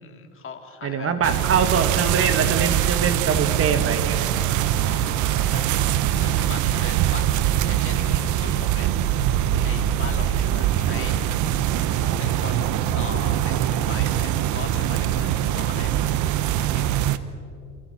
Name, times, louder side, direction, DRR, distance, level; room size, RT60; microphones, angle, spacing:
voice 1, 0.0-1.3 4.8-5.6 6.1-7.3 7.7-8.9 9.6-11.2 12.2-16.0 16.5-16.8, left 6 dB, 40° left, 3 dB, 3.3 m, -39 dB
voice 2, 0.8-4.3 10.5-10.6, right 6 dB, 40° right, 8 dB, 2.0 m, -23 dB
sound 1, 1.2-17.2, right 11 dB, 60° right, 1.2 m, -23 dB
29.0 x 28.5 x 4.5 m, 2.5 s
supercardioid pair, 90°, 33 cm